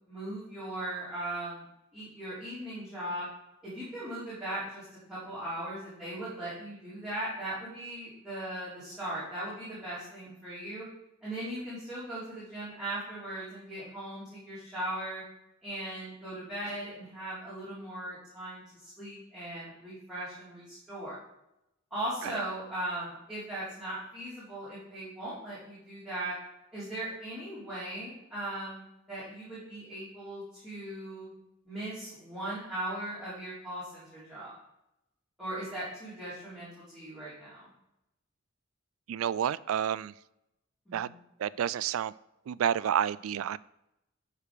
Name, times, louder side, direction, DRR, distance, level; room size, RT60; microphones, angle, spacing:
voice 1, 0.1-1.6 1.9-3.3 3.6-10.9 11.2-15.2 15.6-21.2 21.9-26.3 26.7-31.3 31.6-34.5 35.4-37.7 40.9-41.1, right 1 dB, 5° right, -12 dB, 3.2 m, -38 dB
voice 2, 39.1-40.1 40.9-41.1 41.4-42.1 42.5-43.6, right 9 dB, 85° right, 19 dB, 0.3 m, -29 dB
11.0 x 4.9 x 5.1 m, 0.87 s
head